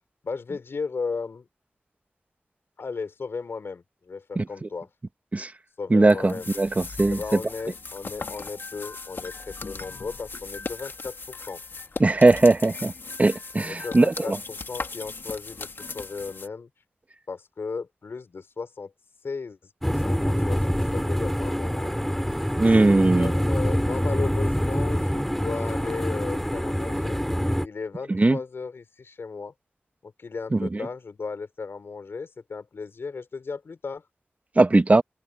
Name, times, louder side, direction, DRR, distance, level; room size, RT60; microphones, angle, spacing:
voice 1, 0.2-1.5 2.8-4.9 5.8-6.5 7.0-11.6 13.6-16.7 17.3-18.9 19.2-19.6 19.9-22.0 23.1-27.2 27.6-29.5 30.0-34.0, left 4 dB, 80° left, 4.8 m, -35 dB
voice 2, 4.4-4.7 5.3-5.5 5.9-7.2 12.0-12.9 13.2-14.4 22.6-23.3 28.1-28.4 30.5-30.8 34.6-35.0, right 2 dB, 40° right, 1.3 m, -19 dB
sound 1, 6.1-16.5, left 4 dB, 65° left, 2.0 m, -38 dB
sound 2, 19.8-27.7, equal, 5° left, 2.6 m, -25 dB
open air
wide cardioid pair, 65°, 4 cm